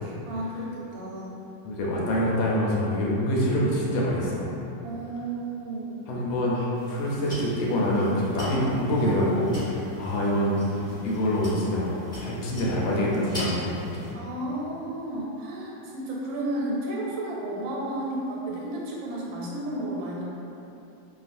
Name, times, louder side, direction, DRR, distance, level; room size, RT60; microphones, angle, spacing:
voice 1, 0.0-1.4 4.8-6.2 14.1-20.2, right 1 dB, 90° right, -4 dB, 1.4 m, -33 dB
voice 2, 1.6-4.4 6.1-10.5 10.9-14.0, equal, 85° left, -4 dB, 1.4 m, -25 dB
sound 1, 6.7-14.1, left 1 dB, 5° left, 0.5 m, -39 dB
3.0 x 2.3 x 2.5 m, 2.9 s
omnidirectional pair, 2.1 m